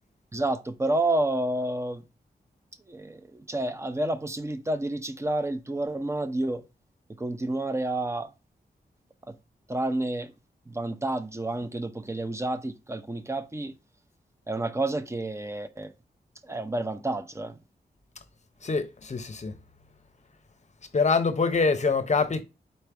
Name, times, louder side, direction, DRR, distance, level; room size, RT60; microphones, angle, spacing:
voice 1, 0.3-2.0 2.9-6.6 7.2-8.3 9.3-9.4 9.7-10.3 10.7-13.7 14.5-15.9 16.4-17.6, right 2 dB, 15° right, 0.6 m, -29 dB
voice 2, 18.6-19.6 20.9-22.4, left 4 dB, 40° left, 0.7 m, -24 dB
4.3 x 3.3 x 3.3 m
wide cardioid pair, 70°, 17 cm